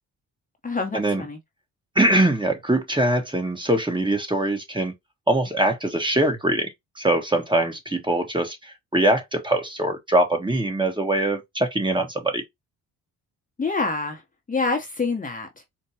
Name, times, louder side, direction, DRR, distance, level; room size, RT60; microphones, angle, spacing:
voice 1, 0.6-1.4 13.6-14.2 14.5-15.5, left 3 dB, 20° left, 0.8 m, -26 dB
voice 2, 1.9-4.9 5.3-6.7 7.0-12.4, right 1 dB, 15° right, 1.1 m, -22 dB
4.5 x 2.2 x 2.8 m
supercardioid pair, 65°, 36 cm